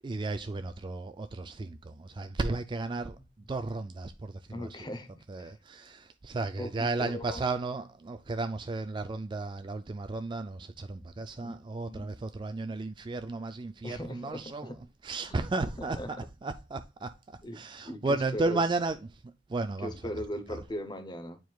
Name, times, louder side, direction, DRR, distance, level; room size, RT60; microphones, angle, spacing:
voice 1, 0.0-4.7 5.3-14.8 15.0-20.2 20.5-20.6, right 3 dB, 25° right, 0.3 m, -34 dB
voice 2, 4.5-5.5 6.4-7.4 11.4-11.6 11.9-12.2 13.8-14.8 15.3-15.4 15.8-16.1 17.4-18.6 19.8-21.4, left 1 dB, 25° left, 0.8 m, -39 dB
9.1 x 4.6 x 2.3 m
head